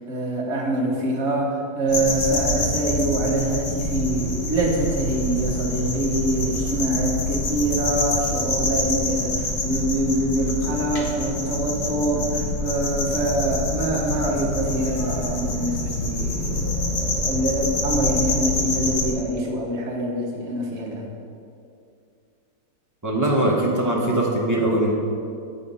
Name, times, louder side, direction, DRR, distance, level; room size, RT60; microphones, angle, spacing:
voice 1, 0.1-21.1, right 1 dB, 45° right, -2 dB, 1.4 m, -25 dB
sound 1, 1.9-19.1, left 1 dB, 85° left, 1.8 m, -26 dB
voice 2, 23.0-24.9, right 1 dB, 20° right, -4 dB, 0.5 m, -21 dB
8.5 x 4.2 x 5.4 m, 2.4 s
omnidirectional pair, 1.9 m